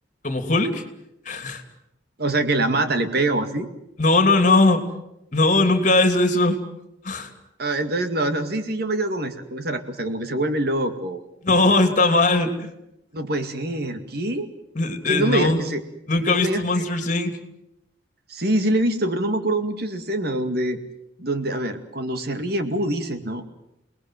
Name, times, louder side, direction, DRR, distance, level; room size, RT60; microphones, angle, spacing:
voice 1, 0.2-0.8 1.2-1.6 4.0-4.8 5.3-6.6 7.0-7.3 11.4-12.7 14.7-15.7 16.1-17.4, left 2 dB, 40° left, 7 dB, 3.0 m, -19 dB
voice 2, 2.2-3.7 7.6-11.2 13.1-14.5 15.1-15.8 16.3-16.8 18.3-20.8 21.2-23.4, right 1 dB, 55° right, 8 dB, 2.2 m, -24 dB
29.5 x 20.0 x 7.7 m, 0.86 s
head